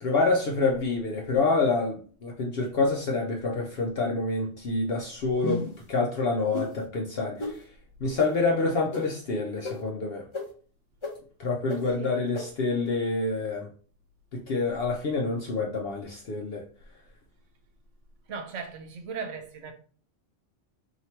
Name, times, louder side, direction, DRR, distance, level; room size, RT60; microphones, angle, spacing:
voice 1, 0.0-7.6 8.0-10.3 11.4-13.7 14.3-16.6, left 3 dB, 60° left, 0.8 m, -27 dB
sound 1, 5.4-5.8 6.5-6.7 7.4-7.5 8.2-8.3 8.9-9.0 9.6-9.7 10.3-10.4 11.0-11.1 11.7-11.8 12.3-12.4, left 2 dB, 30° left, 0.8 m, -32 dB
voice 2, 18.3-19.7, right 5 dB, 80° right, 1.1 m, -37 dB
2.9 x 2.8 x 4.3 m
omnidirectional pair, 1.2 m